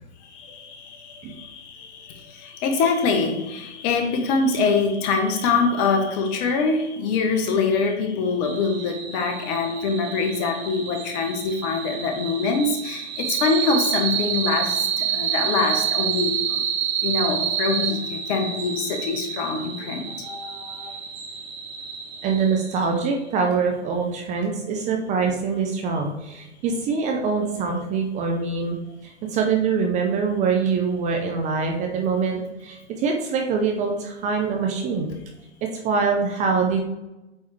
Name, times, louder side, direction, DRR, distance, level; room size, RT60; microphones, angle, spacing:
voice 1, 0.3-16.6 17.0-20.9, left 4 dB, 35° left, 4 dB, 1.1 m, -24 dB
sound 1, 8.4-22.9, right 9 dB, 40° right, 1.0 m, -29 dB
voice 2, 22.2-28.8 29.0-35.1 35.6-36.8, right 5 dB, 20° right, 2 dB, 0.6 m, -24 dB
8.3 x 3.5 x 3.2 m, 1.0 s
hypercardioid pair, 120°, 36 cm